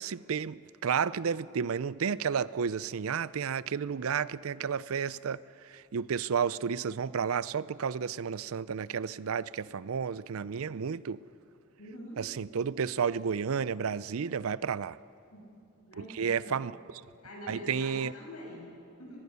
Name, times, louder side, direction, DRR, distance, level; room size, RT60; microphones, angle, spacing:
voice 1, 0.0-11.2 12.2-15.0 16.0-16.7 17.5-18.1, right 6 dB, 65° right, 0.5 m, -32 dB
voice 2, 11.8-12.2 15.3-15.4 15.9-16.7 17.2-19.2, equal, 85° left, 7.8 m, -45 dB
24.0 x 20.0 x 6.9 m
head